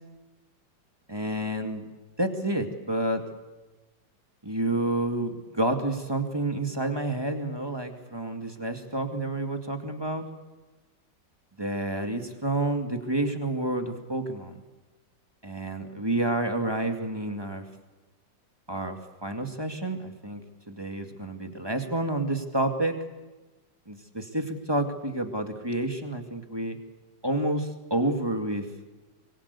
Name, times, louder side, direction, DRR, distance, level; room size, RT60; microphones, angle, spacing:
voice 1, 1.1-1.8 2.2-3.2 4.4-10.2 11.6-14.6 15.4-17.7 18.7-20.4 20.7-23.0 23.9-26.8 27.2-28.7, right 1 dB, 15° right, 5 dB, 2.1 m, -29 dB
25.0 x 22.0 x 8.3 m, 1.1 s
omnidirectional pair, 2.1 m